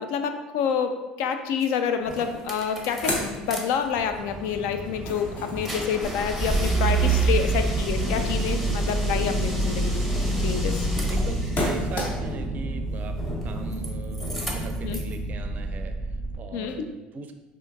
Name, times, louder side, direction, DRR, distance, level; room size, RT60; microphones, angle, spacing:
voice 1, 0.0-10.1 10.4-10.9 14.8-15.0 16.5-16.9, left 7 dB, 70° left, 8 dB, 0.3 m, -28 dB
sound 1, 1.6-1.7 2.1-3.6 3.9-11.7 13.2-13.9 14.1-15.1, right 2 dB, ahead, 0.7 m, -27 dB
sound 2, 2.1-2.2 2.4-4.2 4.6-12.5, left 1 dB, 45° left, 0.9 m, -35 dB
sound 3, 6.9-16.4, right 1 dB, 20° left, 1.1 m, -31 dB
voice 2, 11.1-17.3, right 5 dB, 40° right, 7 dB, 0.4 m, -39 dB
4.9 x 2.5 x 2.6 m, 1.1 s
hypercardioid pair, 70°, 4 cm